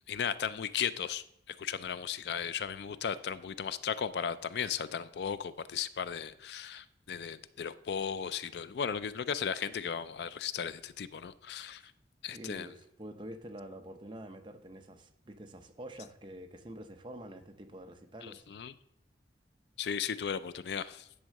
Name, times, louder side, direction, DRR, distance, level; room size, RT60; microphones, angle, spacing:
voice 1, 0.1-11.9 12.2-12.7 18.2-18.7 19.8-21.1, left 7 dB, 65° left, 14 dB, 0.4 m, -36 dB
voice 2, 12.3-18.5, right 1 dB, 25° right, 5 dB, 0.7 m, -47 dB
10.5 x 3.7 x 6.4 m, 0.75 s
head